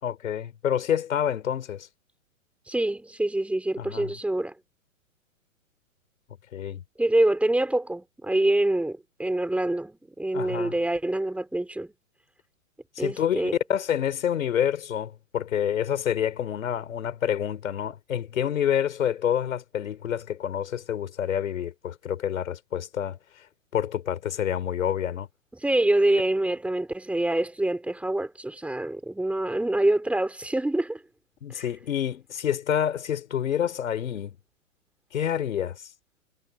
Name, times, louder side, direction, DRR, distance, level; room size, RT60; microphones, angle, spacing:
voice 1, 0.0-1.9 3.8-4.1 6.5-6.8 10.3-10.7 13.0-23.2 23.7-25.3 31.4-34.4 35.1-35.9, left 9 dB, 70° left, 4.4 m, -28 dB
voice 2, 2.7-4.5 7.0-11.9 13.0-13.5 25.5-31.0 31.5-31.6, right 1 dB, 5° right, 6.0 m, -25 dB
hypercardioid pair, 125°, 42 cm